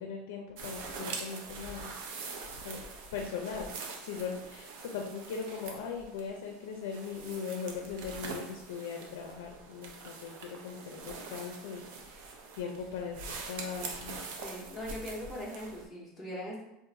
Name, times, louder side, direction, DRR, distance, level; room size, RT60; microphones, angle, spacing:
voice 1, 0.0-1.9 2.6-2.8 3.1-3.7 4.0-12.2 12.5-14.3, left 6 dB, 90° left, 1 dB, 0.4 m, -39 dB
sound 1, 0.6-15.8, right 4 dB, 60° right, 0.5 m, -44 dB
voice 2, 14.4-16.6, equal, 10° left, -5 dB, 0.7 m, -40 dB
2.5 x 2.4 x 3.9 m, 0.90 s
supercardioid pair, 170°, 0 cm